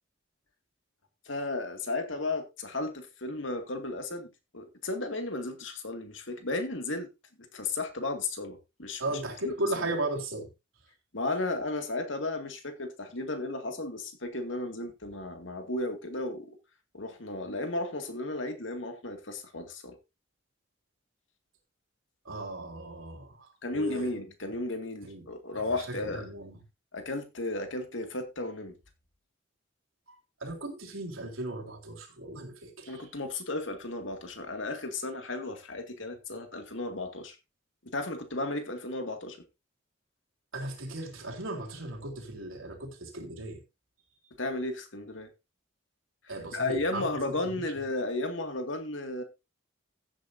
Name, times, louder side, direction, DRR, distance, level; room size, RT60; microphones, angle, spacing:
voice 1, 1.3-7.1 7.5-9.9 11.1-16.6 16.9-20.0 23.6-26.3 26.9-28.7 32.9-37.4 37.8-39.4 44.4-45.3 46.2-49.2, left 2 dB, 70° left, 2.3 m, -34 dB
voice 2, 9.0-10.5 22.3-24.2 25.0-25.2 25.5-26.6 30.1-33.0 40.5-43.6 46.3-47.4, right 2 dB, 90° right, 3.6 m, -36 dB
15.0 x 8.4 x 2.7 m
head